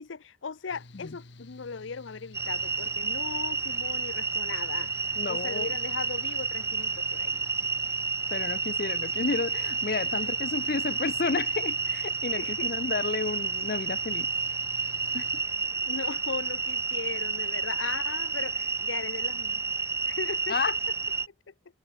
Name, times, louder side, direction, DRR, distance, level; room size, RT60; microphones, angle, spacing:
voice 1, 0.0-7.5 10.0-10.3 12.4-12.7 15.9-19.6 20.1-20.6 21.5-21.6, left 5 dB, 85° left, 0.7 m, -38 dB
Mechanical fan, 0.7-15.4, left 2 dB, 70° left, 1.7 m, -51 dB
sound 1, 2.3-21.3, right 4 dB, 15° right, 0.5 m, -30 dB
voice 2, 5.2-5.7 8.3-14.3 15.1-15.4 20.5-20.7, left 4 dB, 50° left, 0.6 m, -31 dB
head